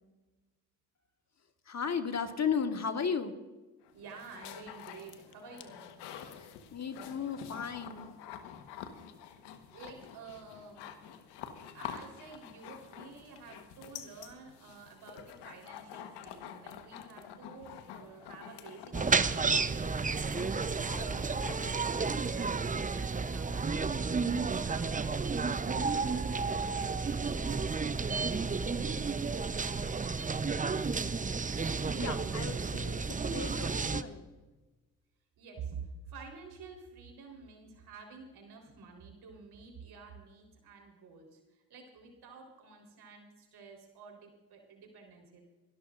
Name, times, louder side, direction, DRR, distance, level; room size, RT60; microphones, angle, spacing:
voice 1, 1.7-3.3 6.3-8.1 32.0-34.3, left 6 dB, 40° left, 6 dB, 1.6 m, -35 dB
sound 1, 3.8-21.9, left 9 dB, 80° left, 1.4 m, -48 dB
voice 2, 3.9-6.0 9.7-10.9 11.7-29.0 35.4-45.4, right 5 dB, 65° right, 2 dB, 4.0 m, -50 dB
sound 2, 18.9-34.0, right 4 dB, 20° right, 0.7 m, -32 dB
29.0 x 12.5 x 2.5 m, 1.2 s
hypercardioid pair, 55°, 40 cm